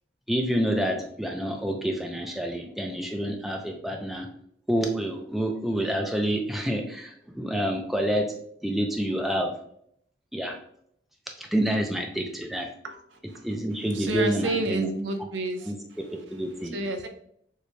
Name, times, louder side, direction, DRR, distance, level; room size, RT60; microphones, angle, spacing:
voice 1, 0.3-4.3 4.7-8.3 8.6-9.5 10.3-10.6 11.4-12.7 13.4-14.9 15.2-15.3 15.6-15.8 16.3-16.7, equal, ahead, 2 dB, 0.4 m, -28 dB
voice 2, 13.9-15.7 16.7-17.1, right 2 dB, 75° right, 5 dB, 0.7 m, -29 dB
6.5 x 2.2 x 3.2 m, 0.69 s
head